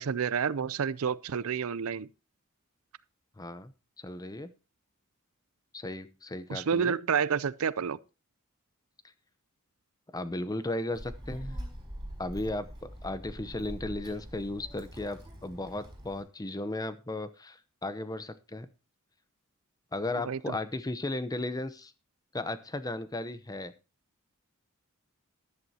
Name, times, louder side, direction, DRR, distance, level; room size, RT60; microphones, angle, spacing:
voice 1, 0.0-2.1 6.5-8.0 20.3-20.4, right 6 dB, 70° right, 0.5 m, -29 dB
voice 2, 3.4-3.7 4.0-4.5 5.7-7.0 10.1-11.6 12.2-18.7 19.9-21.9 22.3-23.7, left 2 dB, 15° left, 0.8 m, -35 dB
Child speech kid speaking, 10.9-16.2, equal, 20° right, 5.1 m, -43 dB
14.0 x 11.0 x 2.8 m
head